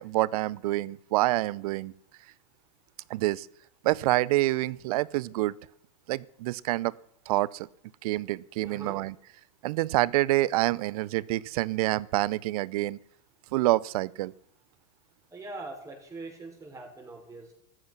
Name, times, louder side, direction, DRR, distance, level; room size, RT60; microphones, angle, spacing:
voice 1, 0.0-1.9 3.1-3.5 3.8-5.5 6.1-6.9 7.3-7.7 8.0-9.1 9.6-13.0 13.5-14.3, right 18 dB, 60° right, 23 dB, 0.6 m, -27 dB
voice 2, 8.6-9.0 15.3-17.5, right 2 dB, 15° right, 0 dB, 5.9 m, -42 dB
14.0 x 13.5 x 6.1 m, 0.70 s
hypercardioid pair, 125°, 21 cm